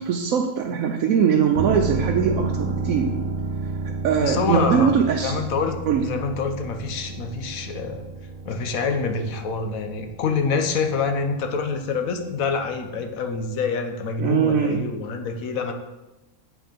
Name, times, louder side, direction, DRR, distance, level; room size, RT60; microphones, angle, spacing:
voice 1, 0.0-3.1 4.0-5.3 5.9-6.1 14.2-14.9, right 7 dB, 75° right, 2 dB, 1.1 m, -21 dB
sound 1, 1.5-13.1 13.4-13.5, right 3 dB, 55° right, 0.4 m, -31 dB
voice 2, 4.1-5.0 5.2-8.1 8.4-15.7, left 5 dB, 80° left, 6 dB, 1.2 m, -26 dB
7.9 x 4.9 x 5.1 m, 1.0 s
omnidirectional pair, 1.4 m